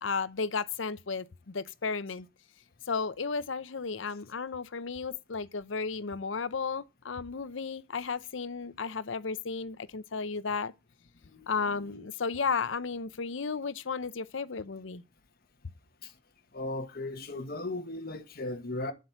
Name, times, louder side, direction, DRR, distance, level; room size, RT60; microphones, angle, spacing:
voice 1, 0.0-2.3 2.9-10.7 11.5-15.0, left 5 dB, 85° left, 0.7 m, -34 dB
voice 2, 16.5-18.9, left 2 dB, 50° left, 1.3 m, -36 dB
9.4 x 7.6 x 5.8 m
head